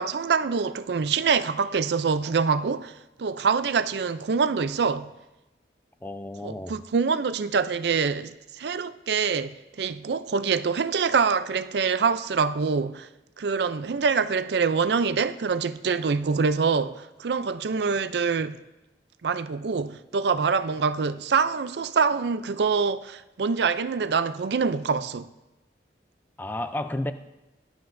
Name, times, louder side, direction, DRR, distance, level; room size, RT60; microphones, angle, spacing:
voice 1, 0.0-2.9 3.2-5.1 6.4-13.1 13.4-18.6 19.2-25.3, right 5 dB, 70° right, 0.4 m, -25 dB
voice 2, 6.0-6.8 26.4-27.1, left 1 dB, 10° left, 0.4 m, -32 dB
18.5 x 11.5 x 2.6 m
head